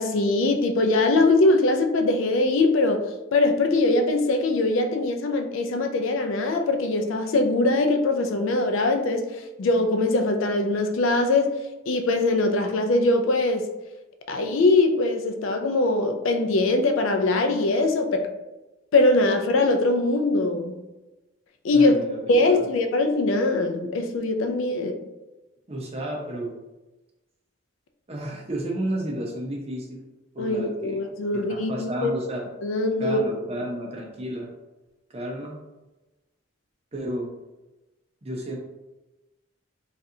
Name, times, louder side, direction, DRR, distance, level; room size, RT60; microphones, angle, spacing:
voice 1, 0.0-3.0 3.3-11.5 11.9-13.6 14.3-18.3 18.9-20.8 21.6-21.9 22.3-24.9 30.4-32.1 32.6-33.2, left 2 dB, 70° left, 6 dB, 0.4 m, -22 dB
voice 2, 21.7-22.7 24.7-24.9 25.7-26.6 28.1-30.1 30.3-31.0 31.3-32.4 33.0-34.5 35.1-35.5 36.9-37.3 38.2-38.6, right 1 dB, 30° right, -1 dB, 0.6 m, -32 dB
4.0 x 2.4 x 2.7 m, 1.0 s
head